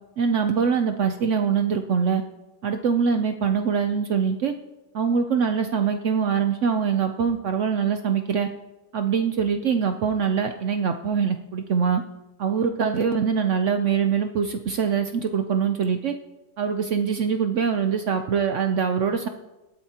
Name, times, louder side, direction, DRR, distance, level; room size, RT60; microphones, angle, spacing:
voice 1, 0.2-2.2 2.6-4.5 4.9-8.5 8.9-12.0 12.4-16.1 16.6-19.3, right 6 dB, 75° right, 7 dB, 0.6 m, -23 dB
21.5 x 8.2 x 2.9 m, 1.0 s
omnidirectional pair, 2.0 m